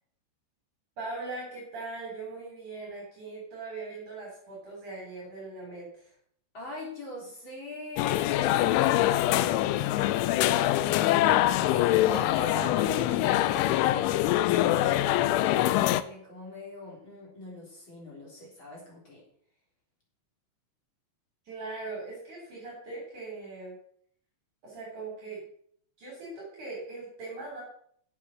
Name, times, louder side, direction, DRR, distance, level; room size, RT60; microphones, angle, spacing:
voice 1, 1.0-6.1 21.4-23.8 24.6-25.4 26.0-27.6, right 3 dB, 45° right, -4 dB, 4.6 m, -40 dB
voice 2, 6.5-14.1 14.6-19.3, equal, 30° left, -4 dB, 3.7 m, -43 dB
sound 1, 8.0-16.0, left 14 dB, 85° left, 3.0 m, -24 dB
10.0 x 7.6 x 6.2 m, 0.64 s
omnidirectional pair, 5.5 m